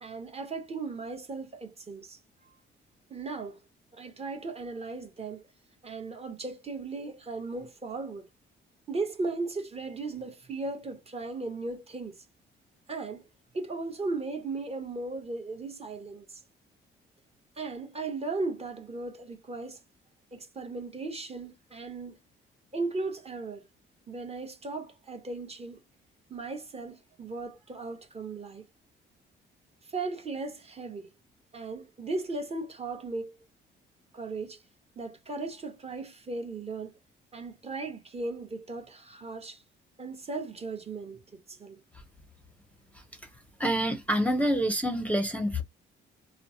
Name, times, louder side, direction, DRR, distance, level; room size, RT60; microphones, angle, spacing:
voice 1, 0.0-2.2 3.1-3.6 3.9-5.4 5.8-8.3 8.9-12.2 12.9-13.3 13.5-16.4 17.6-19.8 20.3-22.2 22.7-23.7 24.1-25.8 26.3-28.7 29.8-31.1 31.5-33.4 34.1-34.6 35.0-36.9 37.3-39.6 40.0-41.8, right 3 dB, 30° right, 0.9 m, -37 dB
voice 2, 43.6-45.6, equal, 5° left, 0.6 m, -27 dB
3.0 x 2.0 x 2.7 m
cardioid pair, 90°, 20 cm